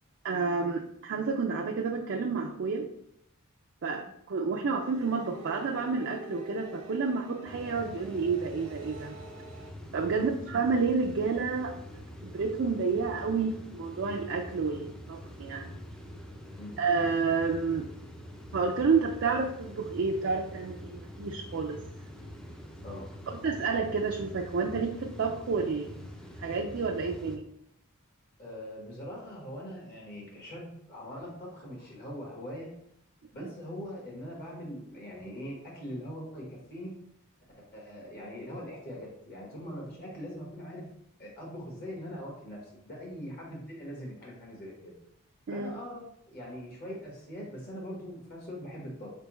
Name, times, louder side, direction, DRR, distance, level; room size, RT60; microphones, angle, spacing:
voice 1, 0.2-2.9 3.8-9.1 9.9-11.8 12.2-15.7 16.8-17.9 18.5-21.8 23.4-25.9 26.4-27.5 33.4-33.5 45.5-45.7, right 4 dB, 55° right, 1 dB, 0.4 m, -30 dB
sound 1, 4.8-9.7, equal, 90° right, 0.8 m, -47 dB
sound 2, 7.5-27.4, equal, 5° left, 0.4 m, -45 dB
voice 2, 28.4-32.7 33.3-36.9 37.6-40.9 41.2-45.0 45.5-49.1, equal, 45° left, -3 dB, 1.3 m, -42 dB
4.5 x 3.4 x 3.0 m, 0.72 s
head